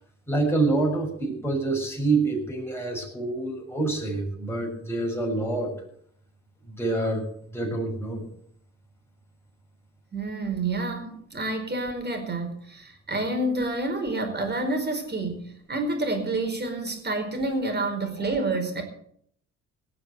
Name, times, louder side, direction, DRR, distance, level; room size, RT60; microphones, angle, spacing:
voice 1, 0.3-5.8 6.7-7.2 7.5-8.2, right 3 dB, 10° left, -1 dB, 6.5 m, -26 dB
voice 2, 10.1-18.8, right 2 dB, 35° right, 5 dB, 4.8 m, -28 dB
18.5 x 7.1 x 7.9 m, 0.66 s
cardioid pair, 90°, 30 cm